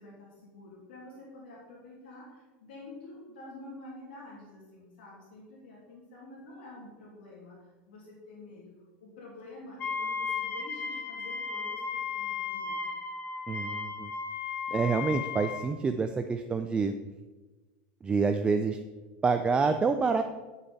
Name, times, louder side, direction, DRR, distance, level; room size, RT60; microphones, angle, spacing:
voice 1, 0.0-13.0, left 2 dB, 85° left, -4 dB, 2.7 m, -48 dB
Wind instrument woodwind instrument, 9.8-15.7, left 5 dB, 30° left, 1.2 m, -35 dB
voice 2, 13.5-14.1 14.7-16.9 18.0-18.8 19.2-20.2, right 4 dB, 20° right, 7 dB, 0.4 m, -27 dB
9.2 x 6.9 x 4.2 m, 1.2 s
supercardioid pair, 120°, 5 cm